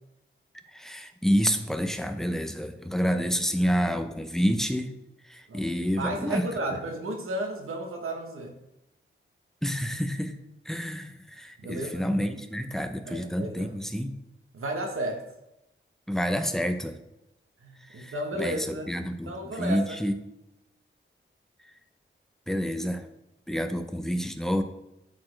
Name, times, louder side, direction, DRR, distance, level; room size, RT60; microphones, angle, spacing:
voice 1, 0.7-4.9 5.3-6.5 9.6-10.4 10.7-14.1 16.1-17.0 17.9-20.1 22.5-23.1 23.5-24.6, equal, ahead, 7 dB, 0.7 m, -28 dB
voice 2, 6.0-8.5 11.6-12.1 13.1-13.7 14.5-15.2 17.6-18.9 19.3-20.0, right 1 dB, 85° right, 1 dB, 1.1 m, -33 dB
13.0 x 4.3 x 3.2 m, 0.89 s
wide cardioid pair, 105°, 21 cm